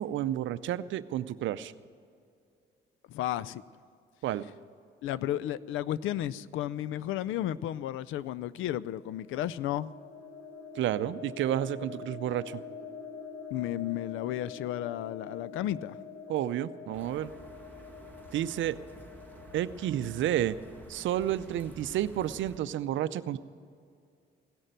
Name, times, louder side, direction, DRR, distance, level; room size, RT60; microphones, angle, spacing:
voice 1, 0.0-1.7 4.2-4.5 10.7-12.6 16.3-17.3 18.3-18.8 19.5-20.6 20.9-23.4, right 12 dB, 75° right, 15 dB, 0.5 m, -31 dB
voice 2, 3.1-3.6 5.0-9.9 13.5-16.0, left 12 dB, 85° left, 19 dB, 0.4 m, -33 dB
sound 1, 9.0-20.9, left 5 dB, 70° left, 3.5 m, -46 dB
sound 2, 16.9-22.6, right 2 dB, 10° left, 1.8 m, -51 dB
16.5 x 6.6 x 9.1 m, 2.3 s
cardioid pair, 90°, 20 cm